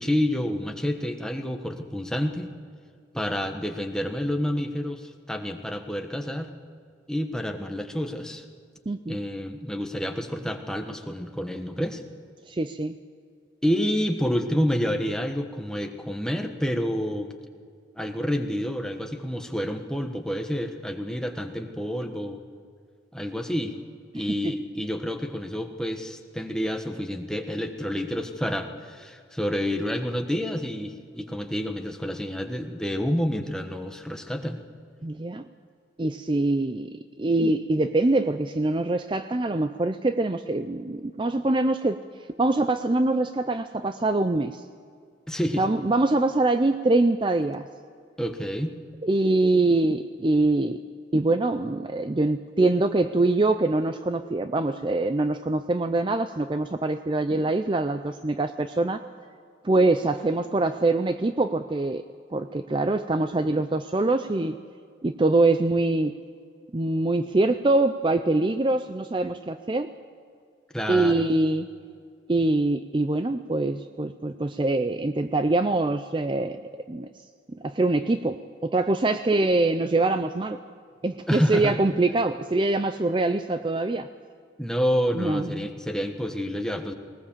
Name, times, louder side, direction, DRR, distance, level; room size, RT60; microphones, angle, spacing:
voice 1, 0.0-2.5 3.1-6.5 7.1-8.4 9.1-12.0 13.6-17.3 18.0-22.4 23.1-23.7 24.1-34.6 45.3-45.6 48.2-48.7 70.7-71.3 81.3-81.7 84.6-86.9, equal, 5° left, 4 dB, 1.2 m, -28 dB
voice 2, 8.9-9.2 12.5-13.0 24.1-24.5 35.0-35.4 36.0-42.0 42.4-44.6 45.6-47.7 49.0-50.8 51.1-59.0 59.6-62.0 62.3-64.6 65.0-66.2 66.7-69.9 70.9-71.7 72.3-76.6 76.9-77.1 77.6-80.6 81.0-84.1 85.1-85.7, right 2 dB, 25° right, 10 dB, 0.5 m, -24 dB
20.0 x 19.5 x 7.3 m, 2.2 s
head